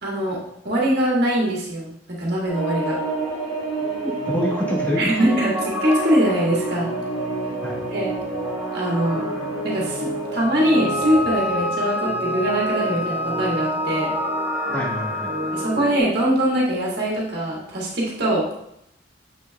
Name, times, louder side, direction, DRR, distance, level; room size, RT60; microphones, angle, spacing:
voice 1, 0.0-3.0 5.0-6.9 7.9-8.1 8.7-9.3 9.6-14.1 15.5-18.5, right 1 dB, 60° right, -4 dB, 1.8 m, -22 dB
sound 1, 2.5-11.1, right 4 dB, 40° left, 2.4 m, -30 dB
sound 2, 2.5-16.0, right 1 dB, 15° right, 1.4 m, -30 dB
voice 2, 4.0-5.0 7.6-7.8 14.7-15.3, left 1 dB, 10° left, -5 dB, 1.4 m, -26 dB
Wind instrument woodwind instrument, 10.6-15.8, left 2 dB, 80° left, 1.0 m, -29 dB
7.6 x 6.2 x 2.3 m, 0.77 s
head